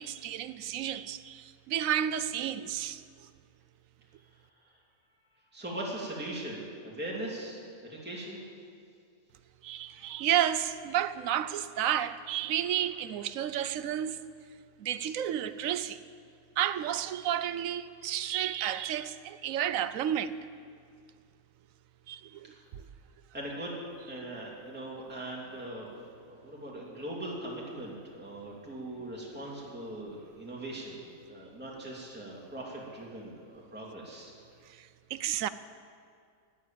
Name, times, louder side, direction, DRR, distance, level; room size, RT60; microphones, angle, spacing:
voice 1, 0.0-3.0 9.6-14.2 14.8-16.0 16.6-20.3 22.1-22.9 34.7-35.5, right 10 dB, 70° right, 1.0 m, -31 dB
voice 2, 5.5-8.4 23.3-23.8 24.1-25.9 26.2-31.0 31.3-34.3, right 1 dB, 5° right, 2.6 m, -40 dB
13.0 x 11.0 x 9.0 m
omnidirectional pair, 1.5 m